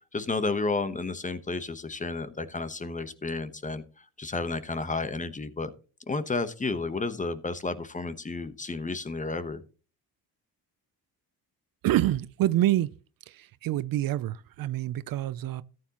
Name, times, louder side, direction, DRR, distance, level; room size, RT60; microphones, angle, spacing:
voice 1, 0.1-5.7 6.1-9.6, left 3 dB, 20° left, 1.0 m, -32 dB
voice 2, 11.8-12.9 13.3-15.6, right 14 dB, 60° right, 0.6 m, -27 dB
14.0 x 9.6 x 2.9 m
cardioid pair, 105°, 39 cm